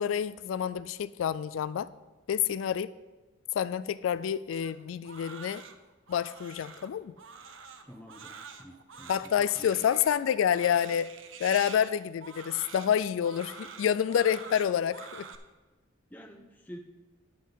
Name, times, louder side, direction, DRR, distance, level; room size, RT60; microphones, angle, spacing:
voice 1, 0.0-1.9 2.3-2.9 3.5-5.6 6.1-7.1 9.1-11.1 11.4-15.3, left 8 dB, 75° left, 17 dB, 0.3 m, -28 dB
Crying sobbing, 4.5-15.3, right 6 dB, 70° right, 0.8 m, -47 dB
voice 2, 7.8-9.3 9.6-9.8 16.1-16.8, equal, 10° left, 2 dB, 0.8 m, -49 dB
11.0 x 8.3 x 3.9 m, 1.2 s
head